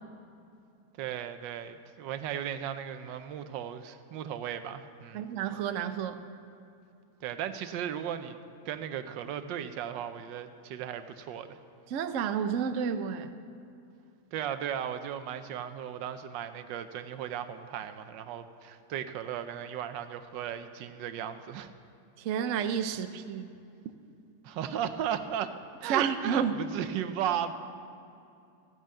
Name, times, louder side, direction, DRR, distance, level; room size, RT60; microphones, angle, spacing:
voice 1, 1.0-5.3 7.2-8.4 8.6-11.6 14.3-21.7 24.4-27.5, right 9 dB, 90° right, 10 dB, 1.4 m, -36 dB
voice 2, 5.1-6.2 11.9-13.3 22.2-23.5 25.9-26.5, right 8 dB, 65° right, 10 dB, 0.8 m, -30 dB
14.0 x 8.9 x 7.6 m, 2.6 s
omnidirectional pair, 1.9 m